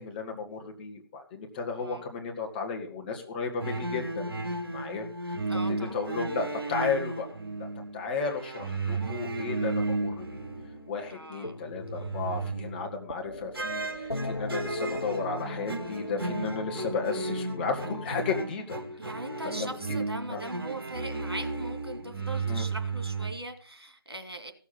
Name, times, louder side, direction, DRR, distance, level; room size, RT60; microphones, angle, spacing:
voice 1, 0.0-4.3 4.7-5.1 5.9-7.3 7.6-10.2 10.9-18.8 20.3-20.4 22.5-22.6, left 4 dB, 25° left, 1 dB, 1.9 m, -34 dB
sound 1, 3.6-11.1 11.5-13.0 13.5-23.3, right 3 dB, 65° right, 2.6 m, -34 dB
voice 2, 5.5-6.0 11.1-11.7 12.0-12.1 19.0-24.5, right 2 dB, 80° right, 5 dB, 2.7 m, -40 dB
sound 2, 10.3-18.4, left 2 dB, 90° left, 1.1 m, -39 dB
15.5 x 7.1 x 6.0 m, 0.43 s
figure-of-eight pair, 150°, 13 cm